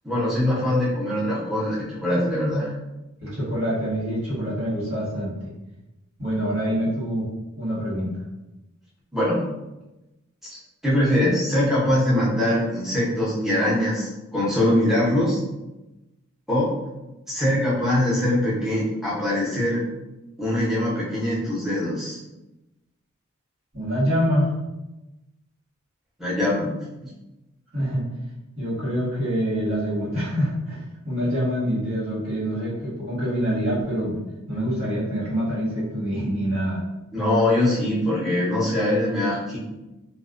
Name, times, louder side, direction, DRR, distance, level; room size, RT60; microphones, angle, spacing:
voice 1, 0.0-2.7 9.1-9.4 10.5-15.4 16.5-16.7 17.3-19.8 20.4-22.2 26.2-26.7 27.0-27.1 37.1-39.6, left 1 dB, ahead, -8 dB, 0.7 m, -22 dB
voice 2, 3.2-5.5 6.2-7.3 7.5-8.1 23.7-24.5 27.7-28.0 28.6-34.2 34.5-36.8, equal, 70° right, -8 dB, 1.4 m, -25 dB
2.4 x 2.2 x 2.4 m, 0.99 s
head